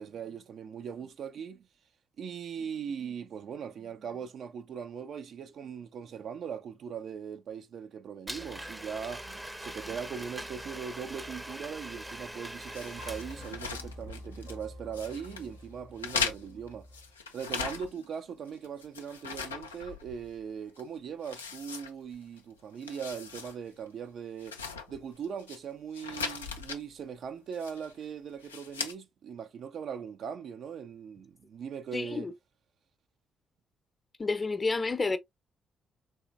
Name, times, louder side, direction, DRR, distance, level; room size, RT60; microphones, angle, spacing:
voice 1, 0.0-1.7 2.2-16.9 17.3-24.6 24.9-32.3, right 7 dB, 55° right, 0.4 m, -40 dB
Domestic sounds home sounds, 8.3-13.9, right 1 dB, 10° right, 0.6 m, -42 dB
sound 1, 12.7-14.6 14.9-15.5 16.0-18.1 18.5-20.4 20.7-20.8 21.2-22.4 22.7-23.5 23.9-24.0 24.4-25.6 25.9-26.8 27.5-28.0 28.4-28.9, left 5 dB, 85° left, 0.3 m, -38 dB
sound 2, 13.0-17.2, equal, 80° right, 1.5 m, -47 dB
voice 2, 31.9-32.3 34.2-35.2, left 3 dB, 30° left, 0.6 m, -30 dB
3.3 x 3.1 x 2.4 m
figure-of-eight pair, 40°, 0 cm